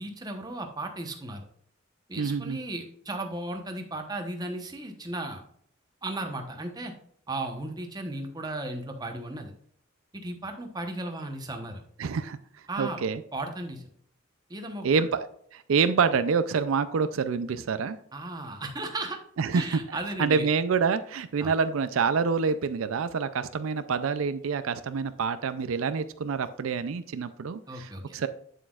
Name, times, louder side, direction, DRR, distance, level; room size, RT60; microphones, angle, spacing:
voice 1, 0.0-1.5 2.1-5.4 6.0-6.9 7.3-9.5 10.1-11.8 12.7-13.0 13.3-13.8 14.5-14.9 18.1-19.2 19.5-20.5 21.4-21.5 27.7-28.2, right 2 dB, 20° right, 4 dB, 0.9 m, -35 dB
voice 2, 2.2-2.6 12.0-12.4 12.8-13.2 14.8-18.0 19.4-28.3, right 5 dB, 80° right, 12 dB, 0.4 m, -27 dB
8.3 x 7.5 x 2.4 m, 0.67 s
head